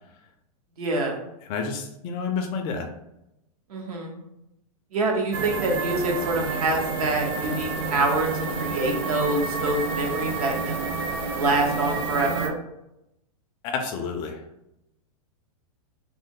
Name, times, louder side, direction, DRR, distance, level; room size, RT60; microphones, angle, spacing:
voice 1, 0.8-1.2 3.7-4.1 4.9-8.3 8.6-10.9 11.3-12.5, right 2 dB, 75° right, 1 dB, 1.0 m, -26 dB
voice 2, 1.5-2.9 13.6-14.4, left 5 dB, 25° left, 4 dB, 0.3 m, -29 dB
sound 1, 5.3-12.5, right 4 dB, 35° right, 0.5 m, -29 dB
3.2 x 2.0 x 3.6 m, 0.86 s
hypercardioid pair, 145°, 19 cm